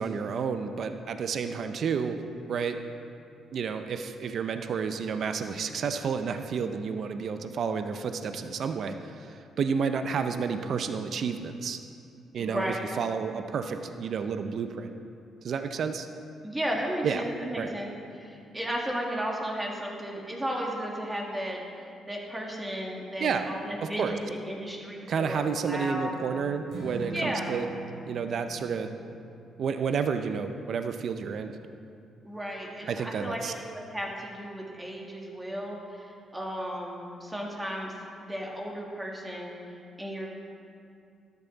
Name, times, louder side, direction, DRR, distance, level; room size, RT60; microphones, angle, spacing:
voice 1, 0.0-2.2 2.5-2.8 3.5-11.8 12.3-15.0 15.4-16.1 17.0-17.2 17.6-17.7 23.2-23.5 23.8-24.2 25.1-27.7 28.1-28.9 29.6-31.6 32.9-33.5, right 6 dB, 60° right, 8 dB, 0.6 m, -30 dB
voice 2, 12.4-12.7 16.4-26.2 27.1-27.5 32.2-37.9 38.2-40.3, equal, 15° right, -1 dB, 2.1 m, -34 dB
Strum, 26.7-33.0, right 3 dB, 80° right, 2.8 m, -43 dB
13.0 x 10.5 x 4.0 m, 2.5 s
cardioid pair, 90°, 0 cm